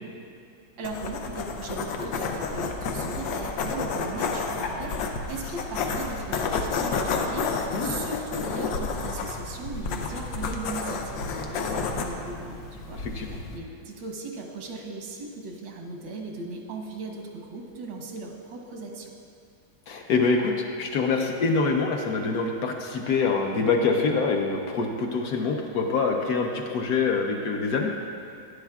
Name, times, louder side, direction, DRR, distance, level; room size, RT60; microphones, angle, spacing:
sound 1, 0.8-13.6, left 4 dB, 85° left, 1.4 m, -31 dB
voice 1, 0.8-19.1, right 3 dB, 90° right, 1 dB, 1.7 m, -37 dB
voice 2, 7.7-8.0 11.7-11.8 13.0-13.4 19.9-27.9, left 4 dB, 65° left, 2 dB, 1.1 m, -25 dB
11.5 x 9.9 x 2.3 m, 2.4 s
omnidirectional pair, 2.0 m